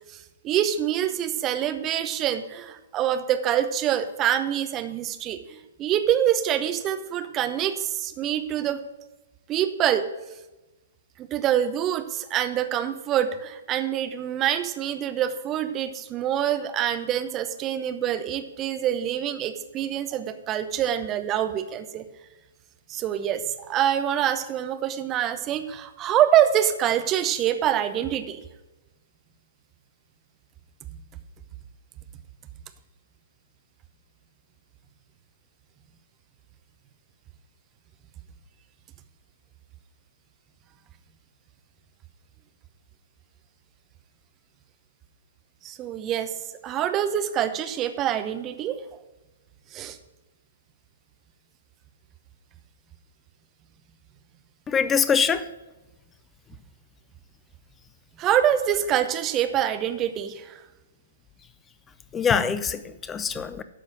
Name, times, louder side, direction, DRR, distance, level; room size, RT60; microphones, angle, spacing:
voice 1, 0.1-8.8 9.5-10.1 11.2-22.1 22.9-28.4 45.6-46.4 46.6-48.8 49.7-50.0 58.2-60.6, right 10 dB, 25° right, 9 dB, 0.8 m, -25 dB
voice 2, 54.7-55.5 62.1-63.6, left 6 dB, 15° left, 13 dB, 0.5 m, -24 dB
12.5 x 4.3 x 7.8 m, 1.1 s
figure-of-eight pair, 115°, 0 cm